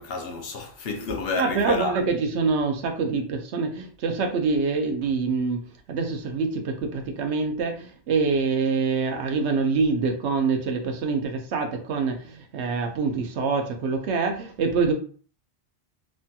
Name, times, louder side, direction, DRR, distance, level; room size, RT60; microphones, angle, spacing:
voice 1, 0.0-2.0, left 4 dB, 65° left, 0.9 m, -30 dB
voice 2, 1.4-5.6 5.9-7.7 8.1-12.2 12.5-14.9, right 4 dB, 85° right, 0.9 m, -25 dB
3.3 x 2.7 x 2.2 m
omnidirectional pair, 1.1 m